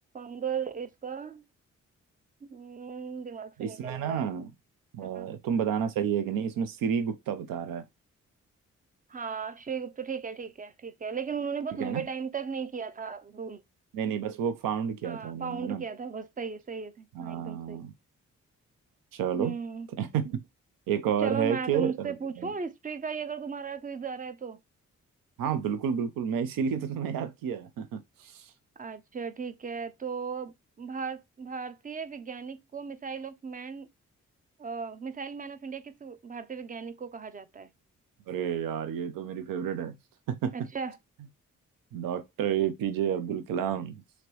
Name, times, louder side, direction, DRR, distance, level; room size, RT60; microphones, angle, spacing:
voice 1, 0.1-1.4 2.4-4.2 5.0-5.3 9.1-13.6 15.0-17.8 19.4-19.9 21.2-24.6 28.8-33.9 34.6-37.7 40.5-41.0, right 6 dB, 25° right, 0.5 m, -36 dB
voice 2, 3.6-4.5 4.9-7.8 11.8-12.1 13.9-15.8 17.1-17.9 19.1-19.6 20.0-20.4 20.9-22.5 25.4-28.5 38.3-40.0 40.3-40.5 41.9-44.0, right 8 dB, 75° right, 0.6 m, -30 dB
2.9 x 2.8 x 2.9 m
supercardioid pair, 40°, 34 cm